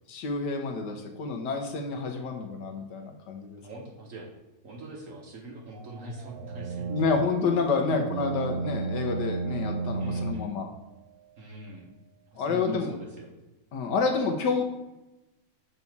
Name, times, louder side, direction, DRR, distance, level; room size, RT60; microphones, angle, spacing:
voice 1, 0.1-3.6 6.9-10.7 12.4-12.9 13.7-14.6, left 4 dB, 65° left, 3 dB, 1.3 m, -28 dB
voice 2, 3.6-4.3 4.6-7.1 7.7-8.0 10.0-10.5 11.4-11.9 12.3-13.3, right 2 dB, 50° right, 0 dB, 1.2 m, -42 dB
sound 1, 5.7-10.3, right 4 dB, 75° right, 1.5 m, -33 dB
6.9 x 4.1 x 4.6 m, 1.0 s
omnidirectional pair, 2.1 m